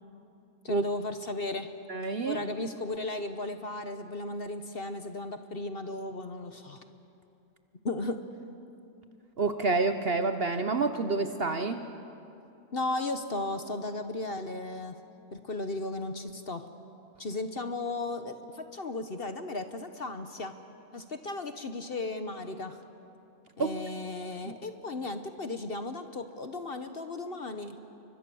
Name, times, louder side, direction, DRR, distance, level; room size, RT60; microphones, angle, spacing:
voice 1, 0.6-1.7 2.3-6.8 7.8-8.2 12.7-14.9 15.3-16.7 17.2-20.5 20.9-22.8 23.6-27.8, left 2 dB, 40° left, 8 dB, 1.1 m, -35 dB
voice 2, 1.9-2.4 9.4-11.8 23.6-23.7 24.4-24.5, right 3 dB, 45° right, 8 dB, 1.0 m, -28 dB
29.5 x 24.0 x 7.0 m, 2.8 s
omnidirectional pair, 1.6 m